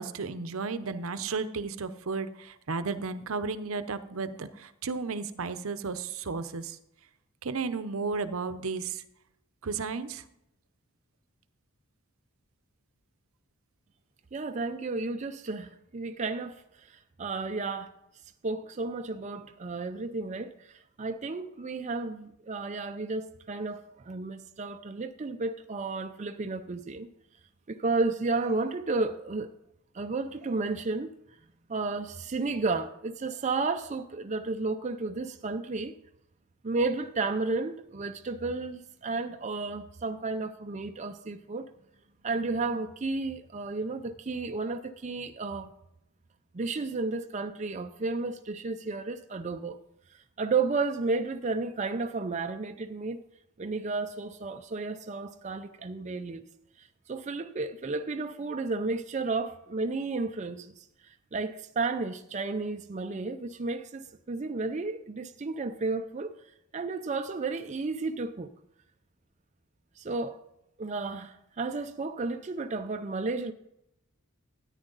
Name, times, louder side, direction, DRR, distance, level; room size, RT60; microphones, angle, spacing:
voice 1, 0.0-6.8 7.4-9.0 9.6-10.2, right 4 dB, 70° right, 0.7 m, -33 dB
voice 2, 14.3-17.9 18.4-27.1 27.7-29.5 29.9-31.1 31.7-36.0 36.6-41.7 42.2-45.7 46.5-49.8 50.1-53.2 53.6-56.4 56.8-60.9 61.3-66.4 66.7-68.5 70.0-70.4 70.8-73.5, right 3 dB, 35° right, 0.4 m, -32 dB
13.5 x 9.9 x 3.9 m
head